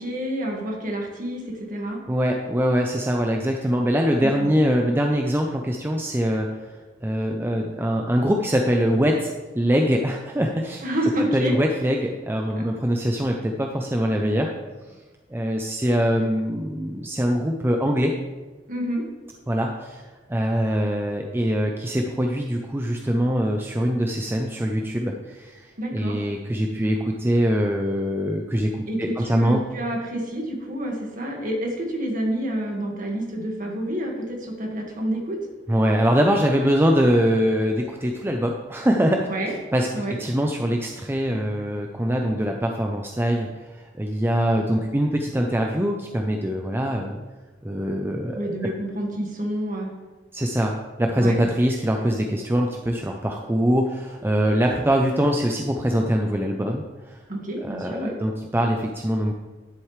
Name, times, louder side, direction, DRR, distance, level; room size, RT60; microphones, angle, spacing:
voice 1, 0.0-2.0 4.2-4.5 10.8-11.5 12.6-12.7 18.7-19.0 25.8-26.2 28.9-35.4 39.3-39.5 39.9-40.2 48.3-49.9 51.2-51.4 57.3-58.1, right 1 dB, 45° right, 0 dB, 1.8 m, -28 dB
voice 2, 2.1-6.7 7.0-10.8 11.3-14.5 14.9-15.0 15.3-18.1 19.5-20.0 20.3-29.6 35.7-39.3 39.7-47.2 47.6-48.5 50.3-50.7 51.0-57.2 57.6-59.3, equal, 10° right, 2 dB, 0.5 m, -23 dB
10.5 x 7.9 x 3.3 m, 1.3 s
head